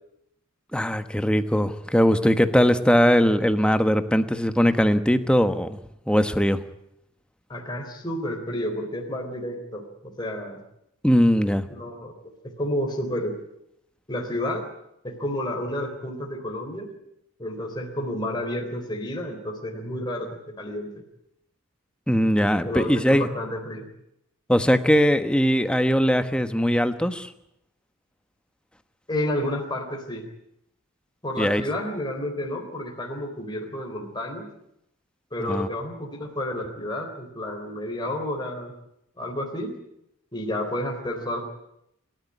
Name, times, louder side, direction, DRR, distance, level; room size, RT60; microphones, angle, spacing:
voice 1, 0.7-5.8 6.1-6.6 11.0-11.6 22.1-23.3 24.5-27.3 31.4-31.6 35.4-35.7, equal, 5° left, 9 dB, 1.2 m, -20 dB
voice 2, 7.5-10.6 11.7-12.1 12.4-13.4 14.1-14.7 15.0-16.9 17.4-20.9 22.6-23.9 29.1-30.2 31.2-34.5 35.3-38.7 39.2-39.7 40.3-41.5, left 1 dB, 20° left, 1 dB, 3.7 m, -30 dB
29.0 x 13.5 x 9.8 m, 0.78 s
head